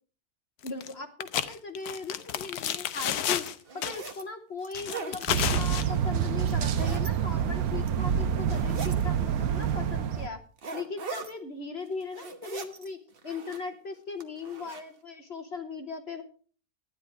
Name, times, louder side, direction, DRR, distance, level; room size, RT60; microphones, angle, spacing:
voice 1, 0.6-3.5 3.7-10.4 10.7-13.0 13.2-16.2, left 4 dB, 45° left, 7 dB, 1.3 m, -38 dB
sound 1, 0.7-0.9 1.2-3.6 3.8-4.2 4.7-5.9, left 10 dB, 75° left, 1.2 m, -31 dB
sound 2, 2.3-2.5 3.1-4.2 4.6-5.4 6.4-7.1 7.7-8.1 8.5-9.0 9.6-9.7 10.6-11.3 11.9-12.9 13.1-13.7 14.2-14.8, right 4 dB, 40° right, 1.3 m, -40 dB
sound 3, 5.3-10.3, right 8 dB, 70° right, 1.3 m, -27 dB
12.5 x 10.0 x 4.7 m, 0.41 s
omnidirectional pair, 1.7 m